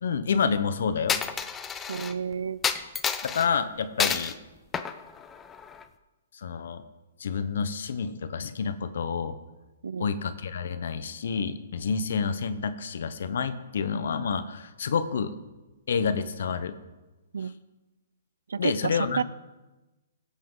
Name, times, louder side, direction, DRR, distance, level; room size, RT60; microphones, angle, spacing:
voice 1, 0.0-1.2 3.2-4.3 6.3-6.8 7.2-9.4 10.0-15.3 15.9-16.7 18.6-19.2, left 6 dB, 70° left, 11 dB, 0.9 m, -28 dB
Coin (dropping), 1.1-2.1 2.6-3.5 4.0-4.3 4.7-5.8, left 6 dB, 15° left, 0.6 m, -29 dB
voice 2, 1.9-2.6 9.8-10.1 17.3-17.5 18.5-19.2, right 6 dB, 85° right, 19 dB, 0.4 m, -30 dB
16.5 x 8.5 x 3.9 m, 1.1 s
hypercardioid pair, 150°, 0 cm